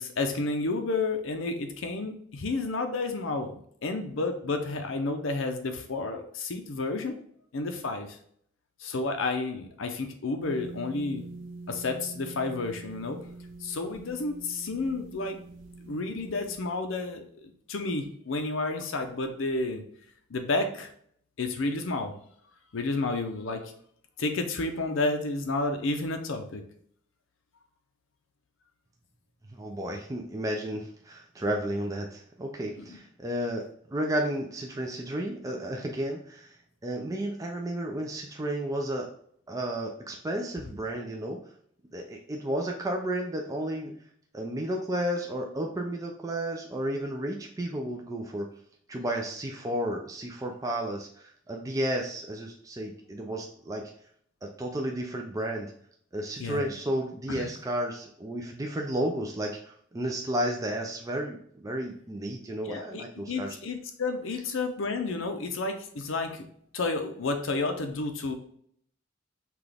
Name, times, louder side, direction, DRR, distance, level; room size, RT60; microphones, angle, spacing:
voice 1, 0.0-7.2 7.5-8.2 8.8-11.2 11.7-13.2 13.6-15.4 15.8-19.8 20.3-20.9 21.4-22.1 22.7-23.7 24.2-26.6 32.8-33.0 56.4-56.7 57.3-57.5 62.6-66.5 66.7-68.3, left 3 dB, 75° left, 5 dB, 0.6 m, -31 dB
sound 1, 10.4-16.6, right 3 dB, 70° right, 0.6 m, -44 dB
voice 2, 29.5-36.6 36.8-39.1 39.5-41.4 41.9-43.9 44.3-48.5 48.9-53.8 54.4-55.7 56.1-63.6, right 1 dB, 15° right, 1 dB, 0.4 m, -32 dB
5.9 x 2.4 x 3.4 m, 0.63 s
head